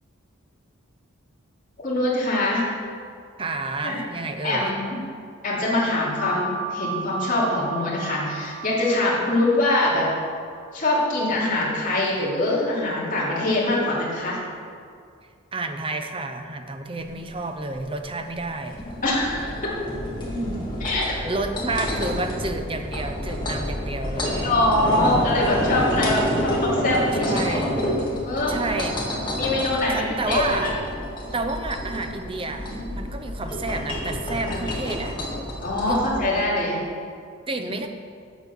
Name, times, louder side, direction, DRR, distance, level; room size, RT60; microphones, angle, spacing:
voice 1, 1.8-2.7 3.8-4.0 4.4-5.0 5.4-10.1 10.7-14.4 19.0-19.7 20.8-21.0 24.4-27.6 28.2-28.6 29.3-30.7 34.4-34.6 35.6-36.8 37.6-37.7, left 1 dB, 40° left, -6 dB, 2.6 m, -23 dB
voice 2, 3.4-4.7 15.5-18.8 20.4-20.7 21.2-24.5 27.1-27.7 28.5-29.0 29.9-30.7 31.3-35.2 35.9-36.0 37.5-37.9, right 2 dB, 25° right, 6 dB, 0.6 m, -30 dB
sound 1, 6.2-11.4, right 3 dB, 65° right, 2.7 m, -35 dB
sound 2, 17.0-36.2, equal, 25° left, 1.9 m, -28 dB
8.1 x 7.4 x 6.0 m, 2.3 s
head